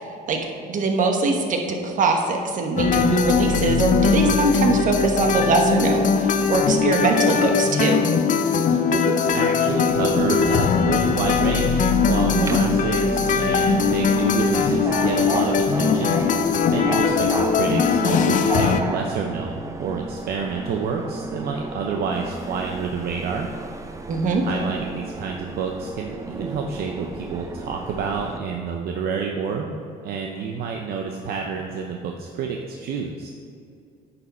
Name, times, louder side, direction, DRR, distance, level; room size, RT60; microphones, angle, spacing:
voice 1, 0.7-8.1 12.2-12.6 24.1-24.4, right 3 dB, 50° right, 3 dB, 1.2 m, -22 dB
sound 1, 2.8-18.8, left 5 dB, 50° left, 0.6 m, -20 dB
voice 2, 8.7-16.2 16.6-23.5 24.4-29.7 30.0-33.3, right 5 dB, 65° right, 2 dB, 0.7 m, -28 dB
Subway metro underground, 9.6-28.4, right 2 dB, 20° right, 0.6 m, -33 dB
9.7 x 6.9 x 4.2 m, 2.4 s
cardioid pair, 110°, 17 cm